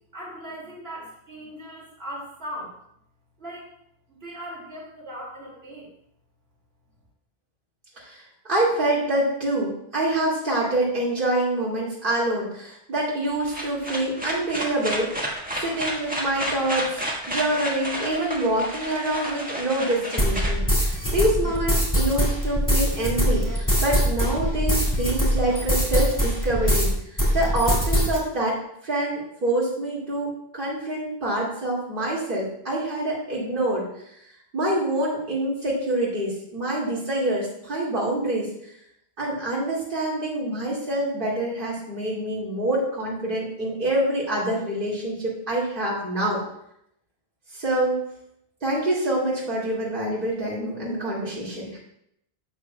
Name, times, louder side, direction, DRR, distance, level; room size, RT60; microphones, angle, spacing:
voice 1, 0.1-2.8 3.4-3.7 4.1-5.9, equal, 70° right, -4 dB, 2.6 m, -38 dB
voice 2, 8.5-15.1 15.6-28.6 28.8-33.9 34.5-38.7 39.2-46.4 47.5-48.0 48.6-51.8, right 1 dB, 55° right, -7 dB, 2.4 m, -26 dB
sound 1, 13.2-21.3, equal, 10° right, 1.4 m, -31 dB
sound 2, 20.2-26.9 27.2-28.2, equal, 15° left, 2.2 m, -22 dB
11.5 x 7.6 x 2.2 m, 0.74 s
omnidirectional pair, 1.1 m